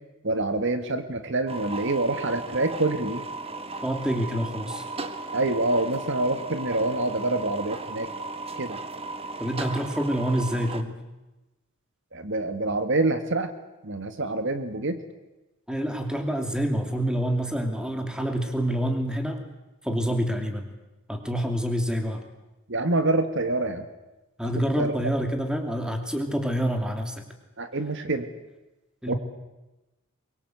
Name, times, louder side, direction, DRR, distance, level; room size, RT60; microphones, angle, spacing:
voice 1, 0.2-3.2 5.3-8.1 8.6-8.8 12.1-13.5 13.8-15.0 22.7-23.9 24.6-24.9 27.6-28.3 29.1-29.2, right 2 dB, 60° right, 9 dB, 1.8 m, -26 dB
sound 1, 1.5-10.8, right 3 dB, 30° right, 1.5 m, -36 dB
voice 2, 3.8-4.8 9.4-11.0 15.7-19.4 19.8-20.7 21.1-22.2 24.4-27.2 29.0-29.1, equal, 5° right, 5 dB, 2.9 m, -27 dB
23.5 x 23.0 x 8.0 m, 1.0 s
head